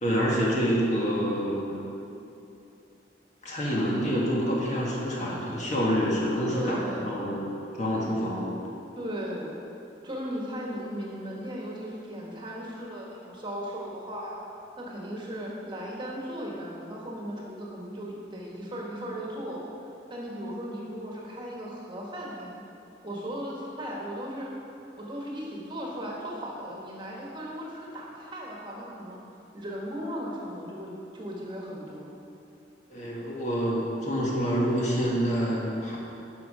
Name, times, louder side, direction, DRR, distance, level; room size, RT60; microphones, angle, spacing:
voice 1, 0.0-1.9 3.4-8.5 32.9-36.0, equal, 40° left, -4 dB, 1.8 m, -27 dB
voice 2, 6.5-7.1 8.0-8.3 9.0-9.6 10.0-14.4 14.8-19.6 20.1-22.6 23.0-24.5 25.0-29.2 29.5-32.1, equal, 25° right, -3 dB, 1.5 m, -37 dB
11.0 x 5.8 x 4.9 m, 2.7 s
head